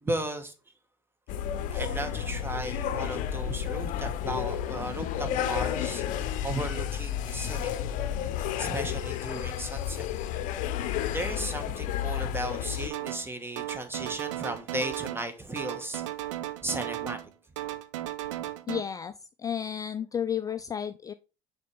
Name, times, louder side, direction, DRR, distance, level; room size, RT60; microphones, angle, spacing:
voice 1, 0.0-0.5 1.7-7.9 8.6-10.1 11.1-16.1 16.6-17.2, right 1 dB, 15° right, 1.3 m, -35 dB
sound 1, 1.3-12.9, left 10 dB, 55° left, 0.7 m, -31 dB
sound 2, 12.9-13.3 13.6-15.3 15.6-17.3 17.6-18.8, right 13 dB, 75° right, 0.5 m, -35 dB
voice 2, 18.7-19.1 19.4-21.1, left 8 dB, 20° left, 0.4 m, -32 dB
6.5 x 4.4 x 3.5 m
hypercardioid pair, 70°, 16 cm